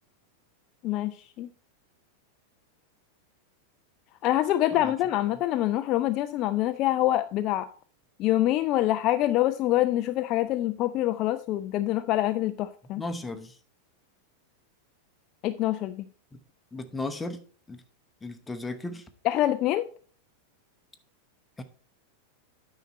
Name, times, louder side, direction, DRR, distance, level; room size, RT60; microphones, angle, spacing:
voice 1, 0.8-1.5 4.2-7.7 8.2-13.0 15.4-16.1 19.2-19.9, left 14 dB, 40° left, 0.4 m, -25 dB
voice 2, 12.9-13.6 16.3-16.4 16.7-17.4 17.7-17.8 18.2-19.1 21.6-21.7, left 2 dB, 10° left, 0.8 m, -35 dB
9.1 x 5.7 x 4.1 m
figure-of-eight pair, 90°, 0 cm